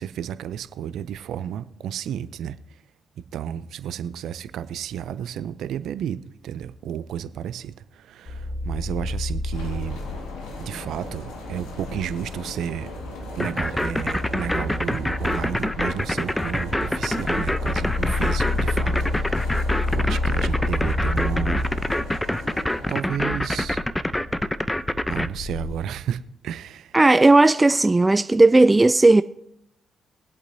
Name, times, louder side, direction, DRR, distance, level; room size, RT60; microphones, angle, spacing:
voice 1, 0.0-2.6 3.3-10.0 10.6-12.9 13.4-19.7 19.9-21.7 22.9-23.8 25.1-26.9, right 9 dB, 70° right, 0.6 m, -32 dB
sound 1, 8.3-25.7, left 2 dB, 35° left, 2.5 m, -30 dB
sound 2, 9.5-23.0, left 2 dB, 75° left, 1.9 m, -38 dB
sound 3, 13.4-25.3, left 1 dB, 10° left, 0.7 m, -25 dB
voice 2, 26.9-29.2, right 2 dB, 20° right, 0.4 m, -15 dB
22.0 x 8.3 x 2.8 m
hypercardioid pair, 45°, 0 cm